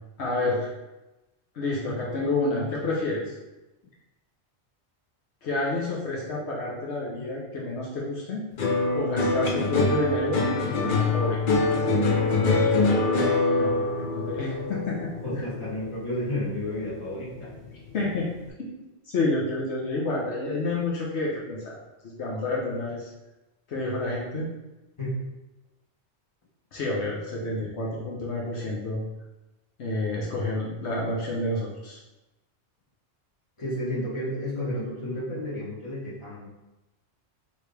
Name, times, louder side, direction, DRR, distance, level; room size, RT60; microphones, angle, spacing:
voice 1, 0.2-0.7 1.5-3.3 5.4-8.4 9.0-11.5 13.5-13.9 14.1-15.4 17.9-18.3 19.1-21.8 22.2-23.1 23.7-24.5 26.7-29.0 29.8-32.0, left 2 dB, 75° left, -3 dB, 1.1 m, -29 dB
sound 1, 8.6-17.0 17.4-18.0, left 3 dB, 55° left, 0.7 m, -25 dB
voice 2, 15.2-17.5 25.0-25.2 33.6-36.5, left 1 dB, 25° left, -7 dB, 1.4 m, -31 dB
4.7 x 3.2 x 3.3 m, 1.0 s
omnidirectional pair, 1.2 m